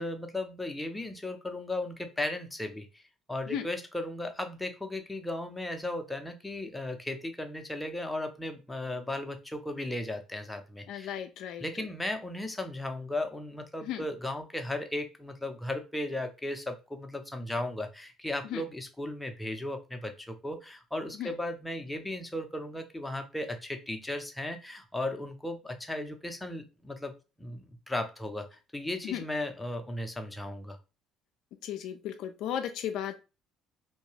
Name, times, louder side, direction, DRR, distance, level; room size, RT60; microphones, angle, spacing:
voice 1, 0.0-3.0 3.3-11.1 11.6-27.1 27.4-30.8, left 1 dB, 10° left, 5 dB, 0.6 m, -36 dB
voice 2, 10.9-11.9 13.8-14.1 18.5-18.6 21.1-21.3 29.0-29.2 31.6-33.2, left 10 dB, 70° left, 7 dB, 0.3 m, -35 dB
2.7 x 2.2 x 3.1 m, 0.30 s
supercardioid pair, 75°, 0 cm